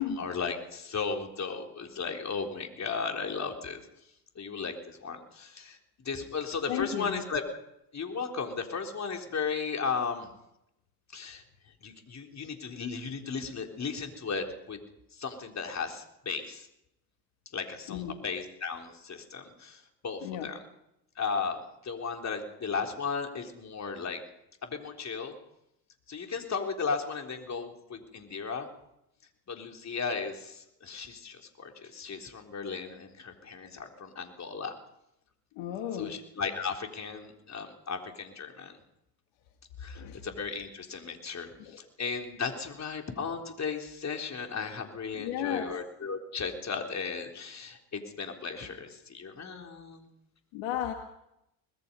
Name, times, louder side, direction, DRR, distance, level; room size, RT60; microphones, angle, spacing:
voice 1, 0.0-3.8 4.4-7.4 7.9-10.3 11.1-11.4 11.8-14.8 15.1-16.7 17.5-20.6 21.2-24.2 24.6-25.3 26.1-28.7 29.5-34.8 36.0-38.7 39.8-50.1, left 5 dB, 35° left, 3 dB, 3.8 m, -35 dB
voice 2, 6.7-7.2 17.9-18.2 20.2-20.5 35.6-36.2 40.0-40.2 41.6-41.8 45.1-45.7 50.5-50.9, left 10 dB, 65° left, 5 dB, 2.1 m, -33 dB
24.0 x 20.0 x 5.5 m, 0.82 s
hypercardioid pair, 65°, 49 cm